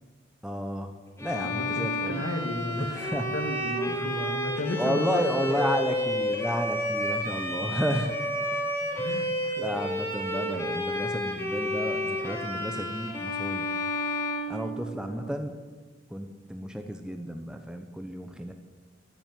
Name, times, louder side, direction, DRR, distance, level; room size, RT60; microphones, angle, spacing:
voice 1, 0.4-0.9 1.2-2.2 2.8-3.2 3.9-4.0 4.8-8.2 9.1-9.2 9.6-13.7 14.5-15.5 16.1-18.5, equal, 5° right, 6 dB, 0.9 m, -32 dB
Bowed string instrument, 1.2-15.3, left 1 dB, 15° left, 2.2 m, -31 dB
voice 2, 1.4-5.7 7.3-7.8 8.4-8.6 9.0-9.7 15.1-15.4, left 1 dB, 85° left, 5 dB, 1.9 m, -35 dB
13.5 x 8.8 x 9.4 m, 1.4 s
head